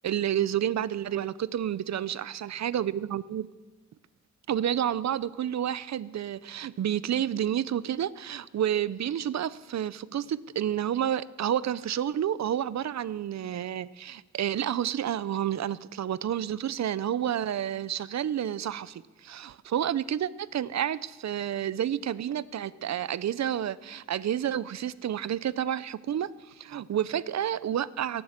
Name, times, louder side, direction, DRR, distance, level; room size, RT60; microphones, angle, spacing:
voice 1, 0.0-3.5 4.5-28.2, right 10 dB, 65° right, 18 dB, 0.5 m, -30 dB
17.5 x 7.8 x 7.3 m, 1.2 s
wide cardioid pair, 140°, 29 cm